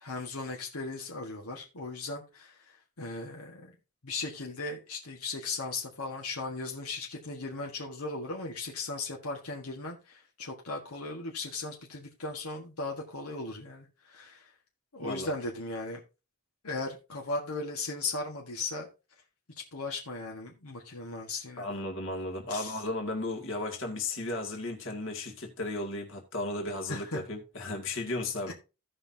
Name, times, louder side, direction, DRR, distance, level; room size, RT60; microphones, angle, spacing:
voice 1, 0.0-2.5 3.0-3.7 4.0-14.5 14.9-16.0 16.6-18.9 19.7-21.7 22.5-22.8 26.9-27.2 28.5-28.6, left 3 dB, 85° left, 1.6 m, -37 dB
voice 2, 15.0-15.3 21.6-28.5, left 2 dB, 60° left, 2.1 m, -35 dB
16.0 x 5.6 x 2.8 m
head